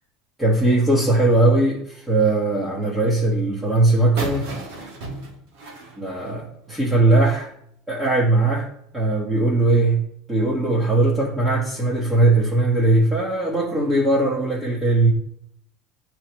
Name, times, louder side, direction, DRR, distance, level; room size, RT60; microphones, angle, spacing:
voice 1, 0.4-4.5 6.0-7.5 7.9-8.7 8.9-15.1, right 2 dB, 10° right, -6 dB, 1.3 m, -19 dB
sound 1, 4.2-6.9, right 2 dB, 75° right, 1.4 m, -34 dB
9.4 x 3.2 x 3.1 m, 0.69 s
supercardioid pair, 125°, 0 cm